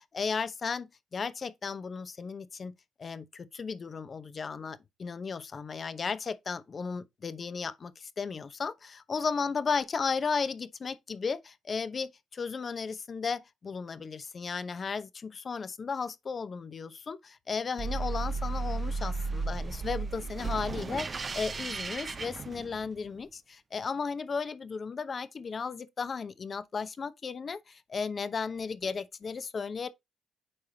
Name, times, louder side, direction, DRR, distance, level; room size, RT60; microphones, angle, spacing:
voice 1, 0.1-29.9, left 5 dB, 40° left, 0.8 m, -35 dB
sound 1, 17.8-23.1, right 4 dB, 35° right, 0.5 m, -34 dB
8.8 x 4.8 x 2.8 m
cardioid pair, 90°, 0 cm